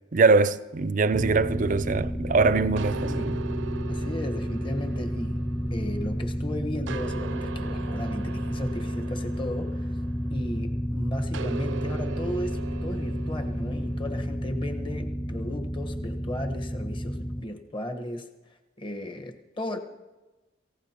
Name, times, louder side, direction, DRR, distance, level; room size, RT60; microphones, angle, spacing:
voice 1, 0.1-3.4, right 4 dB, 45° right, 0.5 m, -22 dB
sound 1, 1.1-17.4, equal, 5° left, 0.5 m, -31 dB
sound 2, 2.8-6.3 6.9-10.6 11.3-14.0, right 4 dB, 85° right, 0.6 m, -39 dB
voice 2, 2.9-3.3 3.9-5.4 5.7-9.9 10.3-18.3 18.8-19.8, left 1 dB, 25° left, 1.2 m, -35 dB
28.0 x 16.0 x 3.0 m
head